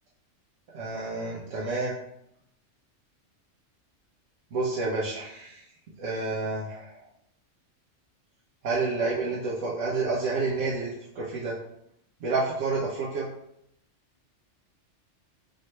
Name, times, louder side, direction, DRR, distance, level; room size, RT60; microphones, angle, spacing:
voice 1, 0.7-1.9 4.5-5.6 6.0-7.0 8.6-11.5 12.2-13.3, right 3 dB, 75° right, -6 dB, 1.2 m, -29 dB
3.2 x 3.1 x 4.2 m, 0.76 s
omnidirectional pair, 1.3 m